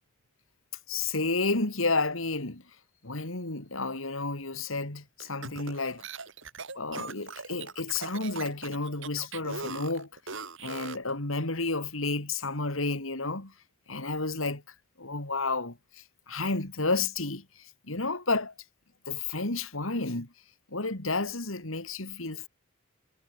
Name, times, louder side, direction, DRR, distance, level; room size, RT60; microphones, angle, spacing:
voice 1, 0.9-2.6 3.0-6.0 6.7-10.1 10.6-13.5 13.9-14.6 15.0-17.4 17.9-18.5 19.1-20.3 20.7-22.5, left 3 dB, 75° left, 3.3 m, -31 dB
sound 1, 5.2-11.1, right 4 dB, 65° right, 8.0 m, -40 dB
head